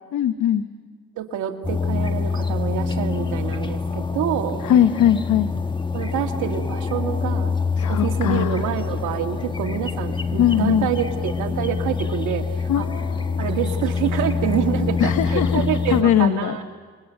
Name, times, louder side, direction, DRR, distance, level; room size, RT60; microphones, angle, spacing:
voice 1, 0.1-0.6 4.6-5.5 7.8-8.6 10.4-10.9 12.7-13.5 15.0-16.6, left 10 dB, 75° left, 9 dB, 1.1 m, -20 dB
voice 2, 1.2-4.6 5.9-7.6 7.9-12.5 12.8-12.9 13.4-16.6, right 10 dB, 80° right, 3 dB, 2.2 m, -27 dB
sound 1, 1.6-16.0, left 4 dB, 15° left, 1.4 m, -25 dB
28.0 x 22.5 x 8.1 m, 1.5 s
cardioid pair, 90°, 30 cm